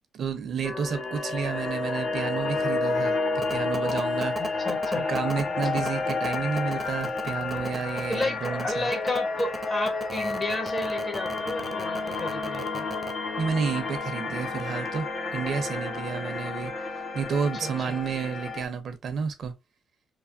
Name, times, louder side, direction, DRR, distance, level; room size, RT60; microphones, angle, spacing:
voice 1, 0.1-4.4 4.9-8.9 13.4-16.7 17.1-19.5, right 6 dB, 60° right, 0.6 m, -31 dB
sound 1, 0.6-18.7, left 3 dB, 60° left, 0.9 m, -30 dB
sound 2, 3.4-13.1, right 2 dB, 20° right, 0.6 m, -36 dB
voice 2, 4.4-5.1 5.7-5.8 8.1-12.9 17.6-18.0, left 2 dB, 25° left, 1.0 m, -32 dB
3.3 x 2.1 x 2.5 m
cardioid pair, 90°, 0 cm